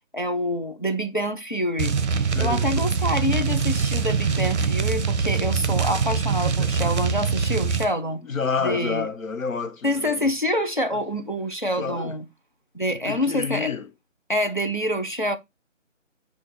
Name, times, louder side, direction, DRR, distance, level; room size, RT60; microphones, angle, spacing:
voice 1, 0.1-8.2 8.6-9.1 9.8-12.3 12.7-13.7 14.3-15.4, equal, 40° left, 0.4 m, -26 dB
sound 1, 1.8-7.9, right 5 dB, 60° right, 0.6 m, -23 dB
voice 2, 2.3-2.9 5.8-6.0 6.6-6.8 8.2-10.3 10.9-11.0 11.8-12.2 13.1-13.9, left 5 dB, 90° left, 1.0 m, -29 dB
sound 2, 4.0-6.6 6.9-7.0, left 2 dB, 20° right, 2.0 m, -49 dB
4.9 x 2.4 x 4.1 m
figure-of-eight pair, 175°, 39 cm